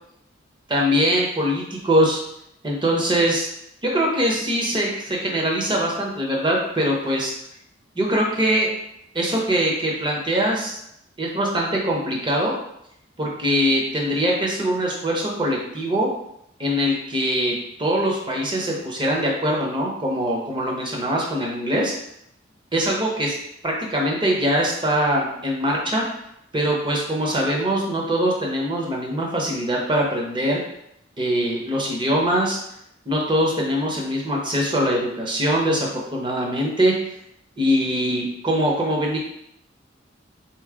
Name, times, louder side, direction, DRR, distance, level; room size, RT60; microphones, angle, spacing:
voice 1, 0.7-2.2 2.6-3.5 3.8-7.3 7.9-8.7 9.1-10.8 11.2-12.5 13.2-16.1 16.6-21.9 22.7-23.4 23.6-26.0 26.5-30.6 31.2-32.6 33.1-36.9 37.6-39.2, equal, 25° right, -2 dB, 0.9 m, -22 dB
4.0 x 3.1 x 3.7 m, 0.76 s
head